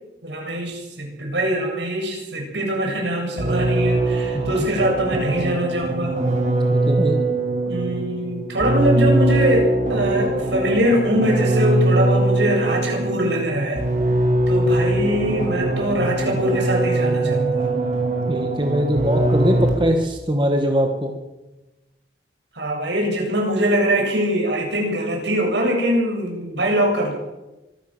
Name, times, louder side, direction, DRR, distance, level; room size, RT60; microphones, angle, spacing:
voice 1, 0.2-6.2 7.6-13.8 14.5-17.7 22.5-27.1, right 1 dB, 75° right, 1 dB, 7.8 m, -22 dB
sound 1, 3.4-20.0, right 2 dB, 40° right, 5.5 m, -22 dB
voice 2, 4.3-4.7 6.7-7.2 18.3-21.1, equal, 25° right, 3 dB, 1.9 m, -22 dB
24.5 x 15.5 x 7.6 m, 1.0 s
head